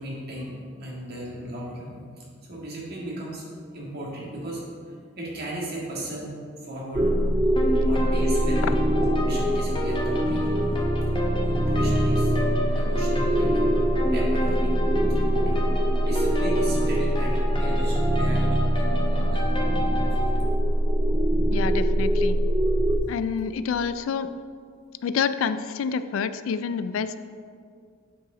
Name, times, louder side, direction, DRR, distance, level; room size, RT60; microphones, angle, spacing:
voice 1, 0.0-3.5 3.7-4.6 5.2-6.3 6.6-7.2 7.8-10.7 11.5-12.3 12.7-13.8 14.1-14.8 15.1-19.6, equal, 55° right, -4 dB, 1.8 m, -36 dB
sound 1, 6.9-23.0, equal, 15° right, 0.3 m, -23 dB
sound 2, 7.6-20.4, equal, 25° left, 0.8 m, -31 dB
voice 2, 21.5-22.4 23.1-24.3 25.0-27.2, left 6 dB, 80° left, 13 dB, 0.3 m, -28 dB
8.6 x 4.8 x 3.9 m, 2.1 s
head